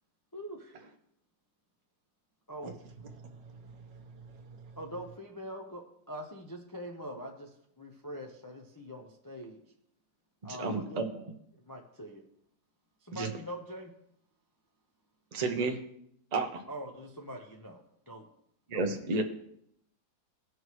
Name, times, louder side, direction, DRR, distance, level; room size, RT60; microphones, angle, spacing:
voice 1, 0.3-0.9 2.5-2.8 4.8-9.6 10.4-11.1 11.7-12.2 13.0-13.9 16.7-18.3 18.7-19.1, equal, 25° left, 0.4 m, -43 dB
voice 2, 2.6-4.8, right 4 dB, 70° right, 1.7 m, -49 dB
voice 3, 10.6-11.0 13.1-13.3 15.3-15.8 16.3-16.6 18.7-19.2, right 3 dB, 30° right, 0.7 m, -31 dB
18.5 x 6.3 x 3.1 m
omnidirectional pair, 2.0 m